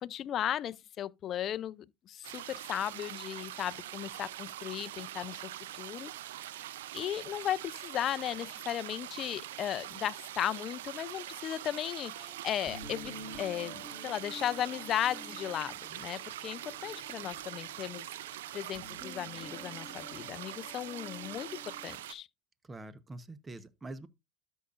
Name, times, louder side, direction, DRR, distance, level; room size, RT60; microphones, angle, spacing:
voice 1, 0.0-5.5 5.8-6.1 6.9-18.1 18.5-22.3, left 11 dB, 45° left, 0.4 m, -36 dB
sound 1, 2.2-22.1, right 13 dB, 90° right, 0.5 m, -43 dB
sound 2, 12.0-22.0, left 1 dB, ahead, 5.0 m, -50 dB
voice 2, 22.7-24.1, right 2 dB, 20° right, 1.0 m, -45 dB
13.0 x 5.6 x 2.5 m
supercardioid pair, 95°, 0 cm